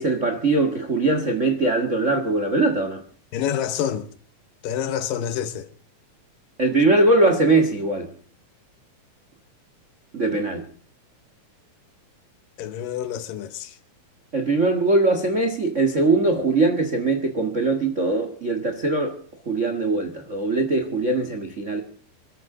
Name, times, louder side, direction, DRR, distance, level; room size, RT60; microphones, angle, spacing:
voice 1, 0.0-3.0 6.6-8.1 10.1-10.7 14.3-19.2 19.4-21.8, right 2 dB, 90° right, 0.6 m, -21 dB
voice 2, 3.3-4.1 4.6-5.7 12.6-13.7, left 9 dB, 70° left, 2.6 m, -27 dB
26.0 x 13.5 x 3.8 m
omnidirectional pair, 4.3 m